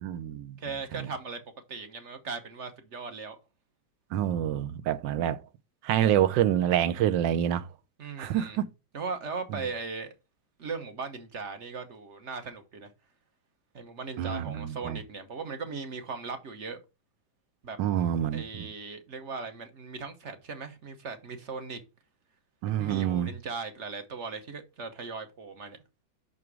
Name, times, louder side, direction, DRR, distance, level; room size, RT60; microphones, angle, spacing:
voice 1, 0.0-0.6 0.9-1.1 4.1-5.4 5.8-7.7 8.2-8.7 9.5-9.6 14.2-15.0 17.8-18.7 22.6-23.3, right 11 dB, 75° right, 1.3 m, -27 dB
voice 2, 0.6-3.4 8.0-8.6 8.9-10.1 10.6-12.9 13.7-16.8 17.6-17.8 18.3-21.8 22.7-25.8, right 4 dB, 50° right, 1.0 m, -38 dB
5.9 x 4.9 x 4.7 m
omnidirectional pair, 2.1 m